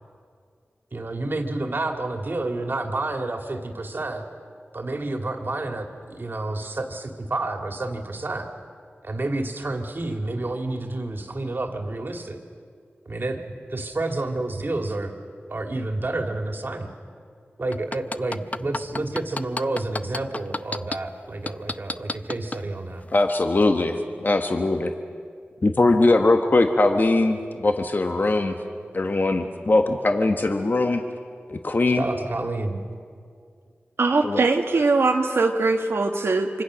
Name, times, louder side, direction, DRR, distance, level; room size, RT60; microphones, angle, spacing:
voice 1, 0.9-4.2 4.7-8.5 9.0-12.4 13.1-13.4 13.7-15.1 15.5-16.9 17.6-23.0 31.9-32.9, right 2 dB, 55° right, 4 dB, 2.5 m, -29 dB
sound 1, 17.7-21.0 21.5-22.6 23.1-23.2, left 2 dB, 35° left, 0.6 m, -29 dB
voice 2, 23.1-24.9 25.6-28.5 28.9-31.0 31.5-32.1 34.2-34.4, left 2 dB, 50° left, 5 dB, 1.4 m, -21 dB
voice 3, 34.0-36.6, right 3 dB, 90° right, 2 dB, 1.5 m, -21 dB
25.5 x 25.5 x 6.4 m, 2.2 s
wide cardioid pair, 55°, 4 cm